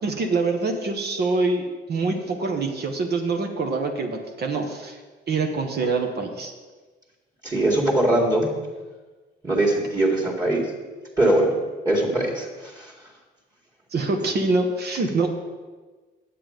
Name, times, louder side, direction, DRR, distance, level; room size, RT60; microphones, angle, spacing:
voice 1, 0.0-5.0 5.3-6.5 13.9-15.3, right 3 dB, 55° right, 3 dB, 1.2 m, -25 dB
voice 2, 7.4-8.5 9.4-10.7 11.2-11.5 11.9-12.9, right 1 dB, 20° right, -2 dB, 2.1 m, -21 dB
8.7 x 7.6 x 5.2 m, 1.3 s
cardioid pair, 90°, 20 cm